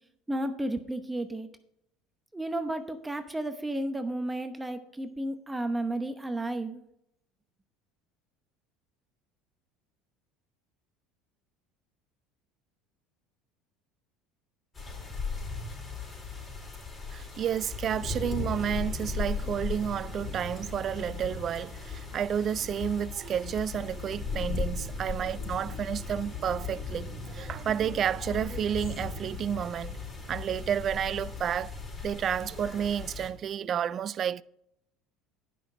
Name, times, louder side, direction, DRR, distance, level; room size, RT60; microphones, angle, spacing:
voice 1, 0.3-1.5 2.3-6.8, right 1 dB, 10° right, 0.9 m, -32 dB
sound 1, 14.8-33.3, left 4 dB, 25° left, 3.9 m, -37 dB
voice 2, 17.1-30.0 30.3-31.7 32.0-34.4, right 9 dB, 45° right, 0.4 m, -31 dB
11.0 x 5.9 x 5.4 m
hypercardioid pair, 80°, 0 cm